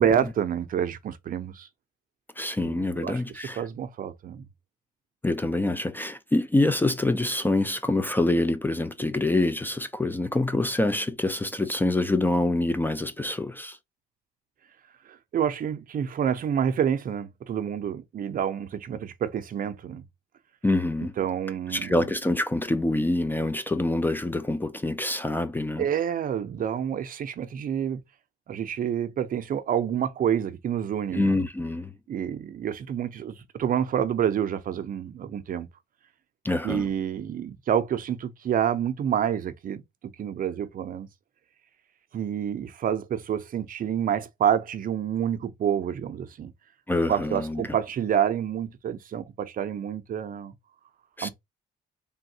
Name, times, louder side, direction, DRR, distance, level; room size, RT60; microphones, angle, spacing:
voice 1, 0.0-1.7 2.6-4.4 15.1-20.0 21.2-22.0 25.8-28.0 28.5-31.4 32.1-35.7 36.6-39.8 40.2-41.1 42.1-46.5 47.1-50.5 51.2-51.3, right 9 dB, 55° right, 0.5 m, -28 dB
voice 2, 2.4-3.7 5.2-13.8 20.6-21.1 21.7-25.9 31.1-31.9 36.4-36.9 46.9-47.6 51.2-51.3, left 2 dB, 10° left, 0.3 m, -26 dB
3.4 x 2.2 x 2.7 m
cardioid pair, 85°, 18 cm